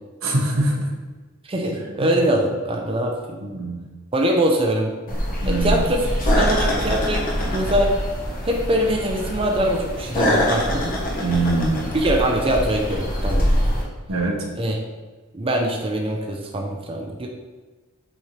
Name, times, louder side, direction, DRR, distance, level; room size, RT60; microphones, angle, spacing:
voice 1, 0.2-0.9 2.0-2.2 3.4-3.8 5.4-5.8 11.2-11.8 14.1-14.4, right 2 dB, 85° right, -1 dB, 1.3 m, -23 dB
voice 2, 1.4-3.4 4.1-4.9 5.4-7.9 8.4-10.9 11.9-13.7 14.6-14.8 15.3-17.3, right 1 dB, 25° right, 1 dB, 0.7 m, -23 dB
sound 1, 5.1-13.8, equal, 45° left, 1.3 m, -24 dB
7.8 x 4.4 x 3.3 m, 1.3 s
head